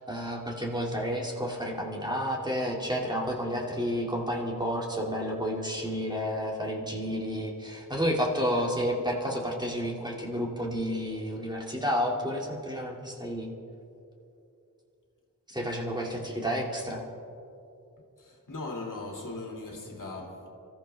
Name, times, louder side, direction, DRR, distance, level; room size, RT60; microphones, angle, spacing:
voice 1, 0.0-13.5 15.5-17.0, equal, 15° right, 2.3 m, -31 dB
voice 2, 18.2-20.5, left 2 dB, 70° left, 2.4 m, -39 dB
26.0 x 14.0 x 3.4 m
wide cardioid pair, 80°, 33 cm